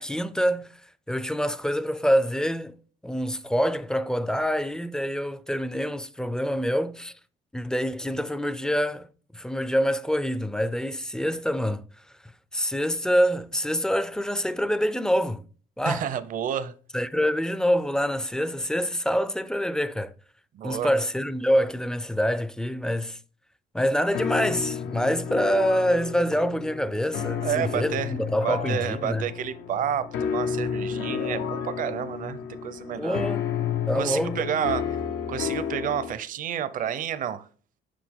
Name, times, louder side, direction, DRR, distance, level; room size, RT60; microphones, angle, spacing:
voice 1, 0.0-2.8 3.0-7.1 7.5-9.1 9.3-15.4 15.8-16.1 16.9-20.1 20.6-23.2 23.7-29.3 33.0-33.5 33.9-34.5, equal, 5° left, 0.3 m, -26 dB
voice 2, 15.9-16.7 20.5-20.9 27.4-28.1 28.4-33.2 33.9-34.8 35.3-37.4, right 9 dB, 50° right, 0.6 m, -30 dB
sound 1, 24.1-36.1, left 7 dB, 90° left, 0.7 m, -31 dB
5.7 x 5.0 x 3.6 m
cardioid pair, 110°, 17 cm